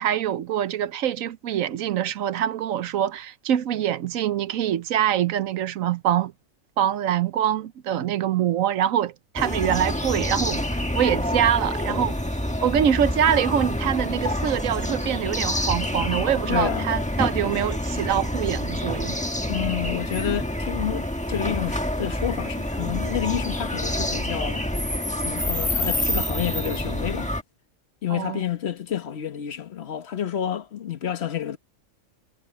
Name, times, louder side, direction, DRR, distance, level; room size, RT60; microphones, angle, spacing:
voice 1, 0.0-6.3 6.8-12.2 12.6-19.2 28.1-28.4, right 10 dB, 80° right, 1.1 m, -24 dB
sound 1, 9.4-27.4, left 1 dB, 5° left, 1.3 m, -27 dB
voice 2, 16.5-16.9 19.5-24.7 25.2-27.3 28.0-31.6, left 10 dB, 55° left, 1.4 m, -29 dB
omnidirectional pair, 1.4 m